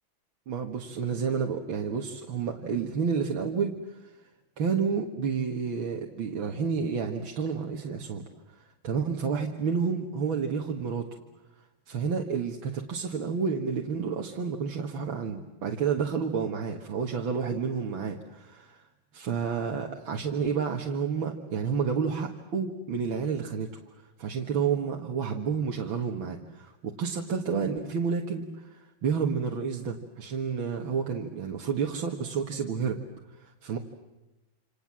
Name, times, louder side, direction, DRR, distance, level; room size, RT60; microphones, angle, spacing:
voice 1, 0.5-4.1 4.6-8.3 8.8-11.1 11.9-18.8 19.1-23.7 24.2-33.0 33.4-33.8, right 6 dB, 70° right, 2 dB, 2.4 m, -30 dB
28.0 x 27.5 x 7.5 m, 1.0 s
omnidirectional pair, 2.3 m